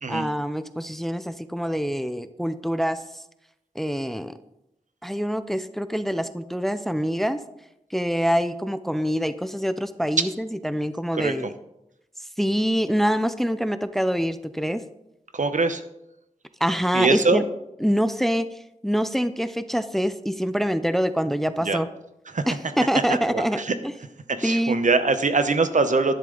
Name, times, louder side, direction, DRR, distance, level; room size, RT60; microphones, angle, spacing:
voice 1, 0.1-3.0 3.8-4.4 5.0-7.4 7.9-11.5 12.4-14.8 16.6-17.4 17.8-21.9 22.5-23.6 24.4-24.8, equal, ahead, 12 dB, 0.6 m, -25 dB
voice 2, 15.3-15.8 16.9-17.4 21.6-21.8 22.3-22.4 23.1-23.7 24.3-26.2, right 3 dB, 70° right, 10 dB, 0.9 m, -23 dB
11.5 x 10.5 x 3.9 m, 0.85 s
wide cardioid pair, 75°, 13 cm